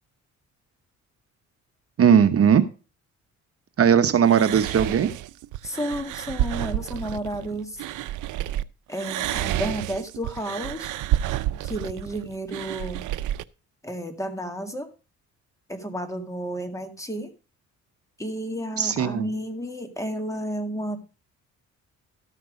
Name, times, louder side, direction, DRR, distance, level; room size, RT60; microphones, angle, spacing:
voice 1, 2.0-2.6 3.8-5.1 18.8-19.3, right 8 dB, 50° right, 9 dB, 1.0 m, -18 dB
sound 1, 4.3-8.6 8.9-13.4, right 13 dB, 80° right, 0.6 m, -30 dB
voice 2, 5.6-7.8 8.9-10.9 11.6-13.0 13.8-14.9 15.7-17.3 18.2-21.0, equal, 10° left, 6 dB, 2.0 m, -32 dB
13.0 x 6.0 x 5.0 m, 0.33 s
cardioid pair, 90°, 30 cm